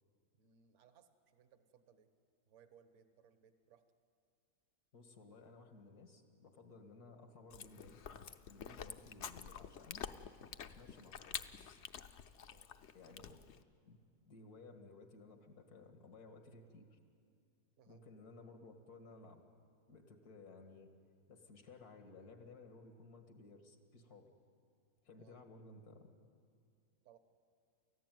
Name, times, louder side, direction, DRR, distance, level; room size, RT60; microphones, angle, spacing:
voice 1, 0.4-2.1 2.5-3.8 12.5-12.7 13.1-13.4 17.8-18.0 25.1-25.4 27.0-27.2, right 8 dB, 55° right, 10 dB, 1.4 m, -66 dB
voice 2, 4.9-8.0 8.5-10.1 10.6-11.4 12.9-13.4 13.9-14.0 14.2-17.0 17.9-19.4 19.9-20.9 21.3-24.3 25.0-26.1, left 3 dB, 80° left, 6 dB, 2.4 m, -57 dB
Chewing mastication, 7.5-13.6, left 8 dB, 55° left, 0.9 m, -48 dB
29.5 x 14.5 x 9.3 m, 2.3 s
omnidirectional pair, 1.6 m